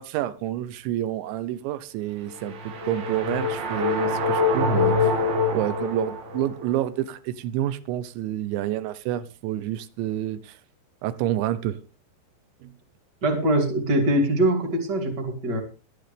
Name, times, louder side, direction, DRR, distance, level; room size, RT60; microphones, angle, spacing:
voice 1, 0.0-5.2 5.5-10.6 11.0-11.8 12.6-12.7, right 13 dB, 90° right, 3.2 m, -29 dB
sound 1, 2.3-6.6, left 3 dB, 60° right, 3.6 m, -25 dB
voice 2, 13.2-15.6, right 1 dB, 30° right, 2.4 m, -23 dB
23.0 x 9.6 x 3.4 m
omnidirectional pair, 5.1 m